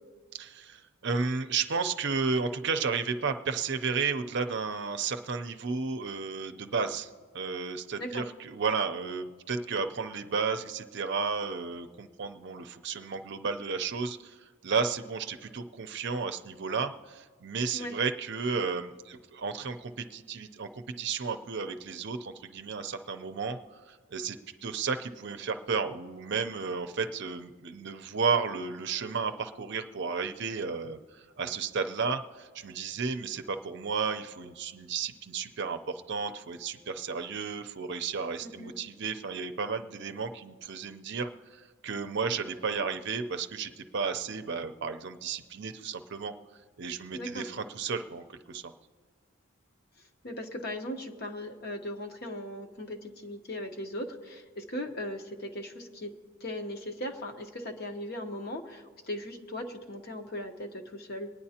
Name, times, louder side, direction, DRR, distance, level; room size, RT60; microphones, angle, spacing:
voice 1, 0.3-7.1 7.3-24.4 24.6-46.3 46.8-48.7, right 5 dB, 55° right, 7 dB, 0.6 m, -33 dB
voice 2, 38.4-38.7 47.1-47.5 50.2-56.1 56.4-61.3, left 1 dB, 50° left, 5 dB, 0.9 m, -38 dB
23.0 x 9.8 x 2.8 m, 1.5 s
head